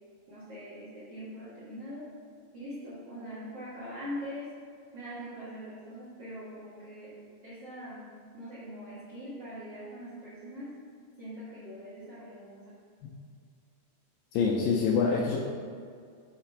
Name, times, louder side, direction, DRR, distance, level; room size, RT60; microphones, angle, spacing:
voice 1, 0.3-2.1 2.5-4.5 4.9-7.2 7.4-10.7 11.2-12.8, equal, 85° right, -11 dB, 1.3 m, -42 dB
voice 2, 14.3-15.4, left 5 dB, 90° left, -3 dB, 2.3 m, -25 dB
6.7 x 4.0 x 4.4 m, 2.2 s
omnidirectional pair, 5.1 m